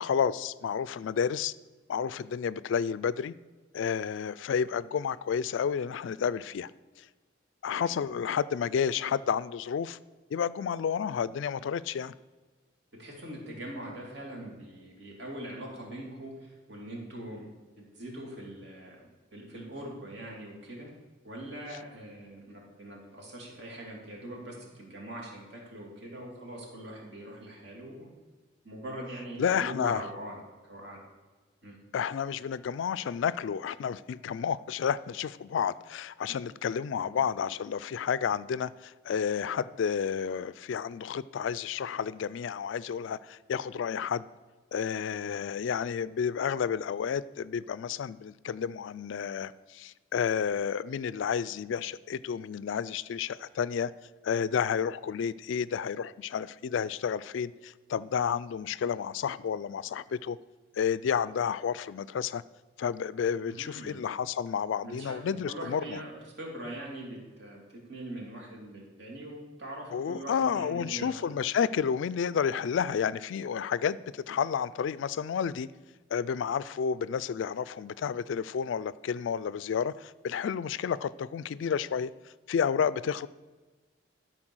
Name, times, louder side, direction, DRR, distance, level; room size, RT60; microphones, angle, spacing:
voice 1, 0.0-1.5 1.9-3.3 3.7-6.7 7.0-7.1 7.6-10.0 10.3-12.1 29.4-30.1 31.9-44.3 44.7-53.9 54.2-60.4 60.8-62.4 62.8-66.0 69.9-75.7 76.1-82.1 82.5-83.3, left 7 dB, 70° left, 0.3 m, -31 dB
voice 2, 13.0-17.5 17.8-19.0 19.3-20.9 21.2-28.1 28.6-30.4 30.6-31.0 31.6-31.8 37.0-37.1 63.3-64.0 64.8-65.2 65.5-67.6 67.9-71.2, right 1 dB, 60° right, 2.8 m, -42 dB
12.5 x 4.5 x 6.2 m
head